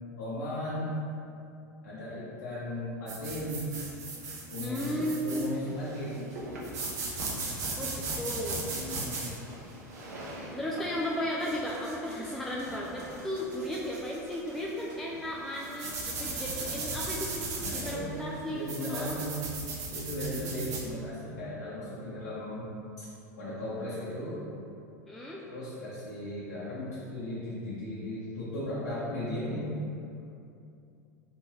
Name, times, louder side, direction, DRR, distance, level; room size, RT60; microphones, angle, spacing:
voice 1, 0.2-0.9 1.8-3.7 4.5-6.3 8.7-9.4 16.5-17.0 17.6-19.4 19.9-22.7 23.0-23.1 23.4-24.4 25.4-29.7, left 1 dB, 80° left, -9 dB, 0.8 m, -36 dB
sound 1, 3.1-20.9, right 3 dB, 75° right, 0.7 m, -38 dB
voice 2, 4.6-5.5 7.8-8.7 10.5-19.2 25.1-25.4, equal, 5° left, -5 dB, 0.4 m, -35 dB
3.4 x 3.0 x 2.9 m, 2.7 s
hypercardioid pair, 90°, 9 cm